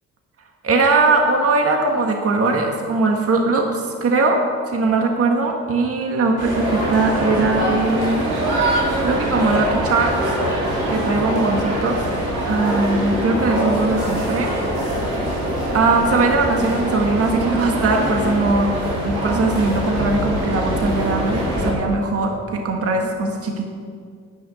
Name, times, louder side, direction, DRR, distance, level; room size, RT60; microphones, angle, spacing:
voice 1, 0.6-4.4 4.7-8.2 9.0-10.4 10.9-12.0 12.5-14.5 15.7-18.7 19.0-23.6, right 3 dB, 50° right, 2 dB, 1.6 m, -20 dB
sound 1, 6.4-21.7, equal, 90° right, 3.8 m, -23 dB
10.5 x 10.0 x 6.9 m, 2.1 s
cardioid pair, 90°, 30 cm